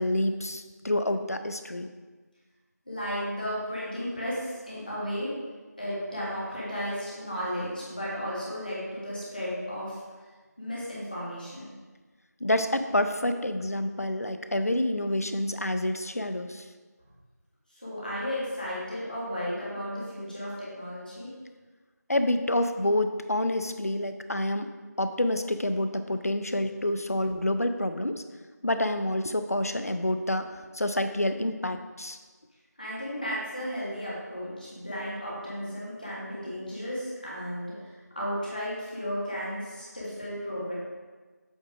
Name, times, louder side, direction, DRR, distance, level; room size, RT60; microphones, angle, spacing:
voice 1, 0.0-1.9 12.4-16.7 22.1-24.7 25.0-28.2 28.6-32.2, left 1 dB, 55° left, 8 dB, 0.5 m, -28 dB
voice 2, 2.9-5.3 5.8-10.0 10.6-11.7 17.8-21.3 32.8-40.7, equal, 30° left, -8 dB, 1.9 m, -34 dB
8.1 x 3.5 x 4.9 m, 1.3 s
figure-of-eight pair, 175°, 10 cm